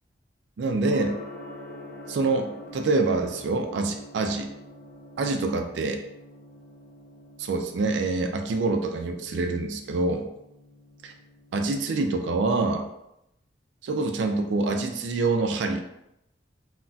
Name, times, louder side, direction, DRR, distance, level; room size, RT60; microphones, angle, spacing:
voice 1, 0.6-1.2 2.1-2.5 2.7-4.5 5.2-6.0 7.4-10.3 11.0-11.1 11.5-12.9 13.8-15.8, right 3 dB, 75° right, 5 dB, 0.3 m, -26 dB
Gong, 0.9-11.7, left 1 dB, 50° left, 0.6 m, -46 dB
3.9 x 2.1 x 2.3 m, 0.84 s
head